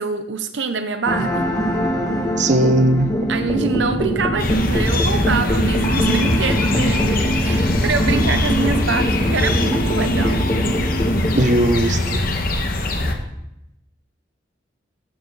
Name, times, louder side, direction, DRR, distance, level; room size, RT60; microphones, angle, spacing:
voice 1, 0.0-1.5 3.3-10.5, right 4 dB, 75° right, 8 dB, 0.7 m, -25 dB
sound 1, 1.1-11.4, equal, 20° left, 1.3 m, -22 dB
voice 2, 2.4-3.1 11.3-12.2, right 1 dB, 40° right, 7 dB, 0.8 m, -17 dB
sound 2, 4.4-13.2, left 2 dB, 55° left, 1.2 m, -22 dB
13.5 x 7.2 x 3.9 m, 0.86 s
head